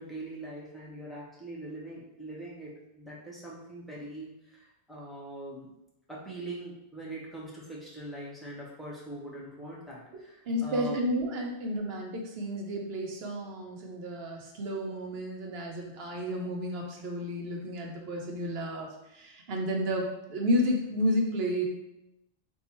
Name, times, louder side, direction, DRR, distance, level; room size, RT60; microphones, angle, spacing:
voice 1, 0.0-5.7 6.1-11.0, right 1 dB, ahead, -6 dB, 1.1 m, -42 dB
voice 2, 10.5-21.7, equal, 75° right, 1 dB, 1.1 m, -31 dB
4.5 x 2.4 x 4.4 m, 0.89 s
omnidirectional pair, 1.0 m